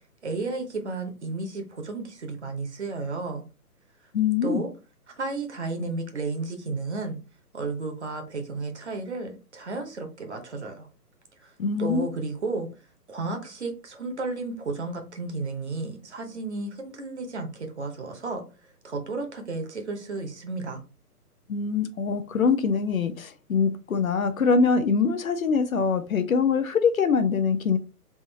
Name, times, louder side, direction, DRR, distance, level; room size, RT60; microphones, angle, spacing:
voice 1, 0.2-3.4 4.4-4.7 5.1-7.2 7.5-10.9 11.4-11.5 11.8-12.7 13.1-18.4 18.8-20.8, right 3 dB, 45° right, 0.9 m, -33 dB
voice 2, 4.1-4.6 11.6-12.1 21.5-27.8, left 5 dB, 60° left, 0.6 m, -23 dB
3.6 x 2.6 x 4.0 m
hypercardioid pair, 175°, 47 cm